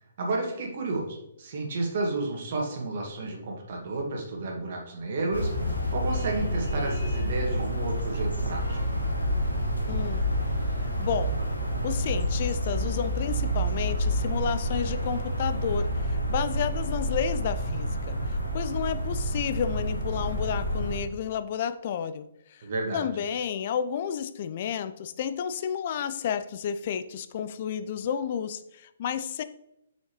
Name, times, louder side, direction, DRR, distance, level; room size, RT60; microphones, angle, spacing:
voice 1, 0.2-9.0 22.6-23.2, right 2 dB, 45° right, 0 dB, 1.9 m, -32 dB
sound 1, 5.3-21.0, equal, 80° left, 1.6 m, -28 dB
voice 2, 9.9-10.3 11.0-11.4 11.8-22.7 22.9-29.4, left 8 dB, 40° left, 12 dB, 0.5 m, -31 dB
6.4 x 6.3 x 3.1 m, 0.84 s
figure-of-eight pair, 125°, 0 cm